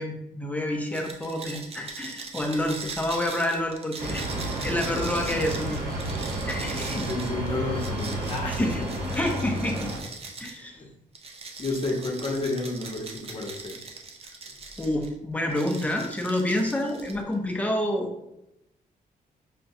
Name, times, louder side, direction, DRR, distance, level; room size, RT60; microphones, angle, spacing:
voice 1, 0.0-4.3 4.6-5.8 6.5-7.1 8.5-8.8 9.2-9.9 10.4-10.8 14.8-18.1, left 1 dB, 10° left, 1 dB, 0.6 m, -28 dB
sound 1, 0.9-10.6 11.2-15.1 15.5-17.3, right 4 dB, 40° right, 0.5 m, -41 dB
sound 2, 4.0-10.0, right 1 dB, 75° right, 1.0 m, -31 dB
voice 2, 6.6-8.7 10.7-10.9 11.6-13.8, left 2 dB, 40° left, 0 dB, 0.8 m, -31 dB
5.8 x 2.2 x 2.7 m, 0.86 s
wide cardioid pair, 130°, 15 cm